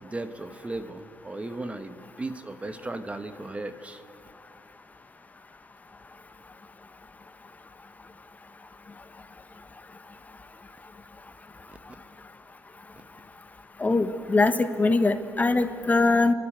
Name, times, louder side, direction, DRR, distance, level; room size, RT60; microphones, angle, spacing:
voice 1, 0.0-4.0 11.9-12.0, right 2 dB, 20° right, 10 dB, 1.0 m, -36 dB
voice 2, 13.8-16.3, left 3 dB, 25° left, 10 dB, 1.2 m, -22 dB
30.0 x 12.0 x 8.9 m, 2.4 s
cardioid pair, 100°, 7 cm